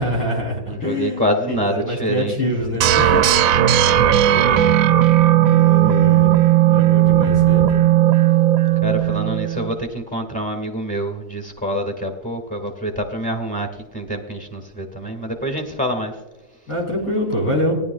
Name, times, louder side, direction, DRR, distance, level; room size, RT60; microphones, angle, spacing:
voice 1, 0.0-3.4 4.3-4.7 5.5-6.3 6.7-7.8 16.7-17.7, equal, 65° left, -1 dB, 4.1 m, -25 dB
voice 2, 0.7-2.3 2.7-2.9 3.9-4.7 7.2-7.5 8.8-13.7 13.9-16.1, equal, 5° left, 4 dB, 1.7 m, -26 dB
sound 1, 2.8-9.7, right 12 dB, 70° right, 0.9 m, -15 dB
18.5 x 11.0 x 2.3 m, 1.1 s
omnidirectional pair, 1.7 m